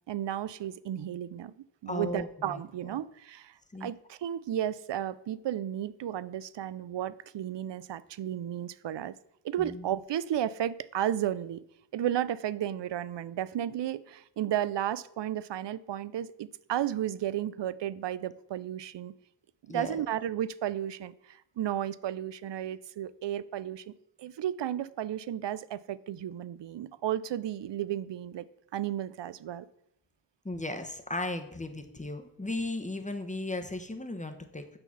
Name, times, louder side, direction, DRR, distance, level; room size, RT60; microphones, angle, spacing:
voice 1, 0.0-1.6 1.8-3.5 3.8-9.2 9.4-11.6 11.9-19.1 19.7-23.9 24.2-28.5 28.7-29.7, right 11 dB, 65° right, 18 dB, 0.5 m, -33 dB
voice 2, 1.9-3.0 3.7-3.9 9.7-9.9 19.7-20.0 30.4-34.8, left 2 dB, 15° left, 6 dB, 1.0 m, -36 dB
8.7 x 4.0 x 7.0 m, 0.77 s
wide cardioid pair, 90°, 46 cm